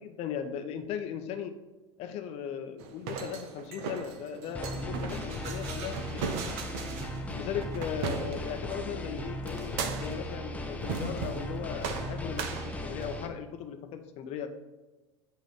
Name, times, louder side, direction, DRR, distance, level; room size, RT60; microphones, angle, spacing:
voice 1, 0.0-1.5 2.0-6.2 7.3-14.5, left 8 dB, 45° left, 7 dB, 0.8 m, -38 dB
sound 1, 2.8-8.8 9.5-10.3 10.8-11.5 11.8-13.3, right 5 dB, 50° right, 0.7 m, -37 dB
sound 2, 4.5-13.3, left 1 dB, 10° left, 0.7 m, -37 dB
8.3 x 3.0 x 4.9 m, 1.2 s
figure-of-eight pair, 80°, 15 cm